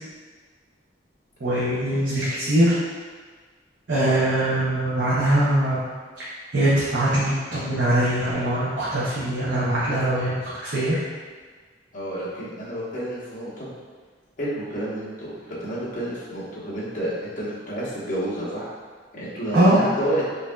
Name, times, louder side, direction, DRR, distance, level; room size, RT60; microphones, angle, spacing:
voice 1, 1.4-2.7 3.9-5.9 6.2-6.3 6.5-11.0 19.5-19.8, right 1 dB, 60° right, -10 dB, 0.8 m, -22 dB
voice 2, 11.9-13.7 14.4-18.7 19.1-20.2, right 1 dB, 45° left, -9 dB, 1.1 m, -30 dB
5.1 x 2.7 x 2.3 m, 1.5 s
head